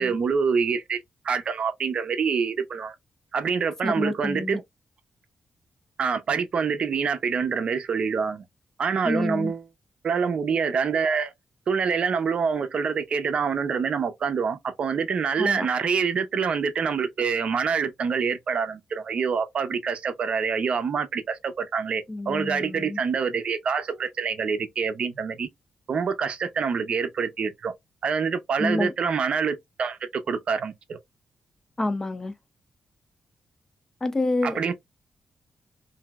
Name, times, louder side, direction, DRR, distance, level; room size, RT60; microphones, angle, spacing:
voice 1, 0.0-2.9 3.3-4.6 6.0-8.4 8.8-9.6 10.0-11.3 11.7-25.5 25.9-27.7 28.0-31.0 34.4-34.7, right 6 dB, 55° right, 0.5 m, -26 dB
voice 2, 3.8-4.6 9.0-9.5 15.4-15.7 22.1-23.0 28.6-28.9 31.8-32.3 34.0-34.7, left 2 dB, 20° left, 0.5 m, -28 dB
3.0 x 2.6 x 2.3 m
wide cardioid pair, 125°, 2 cm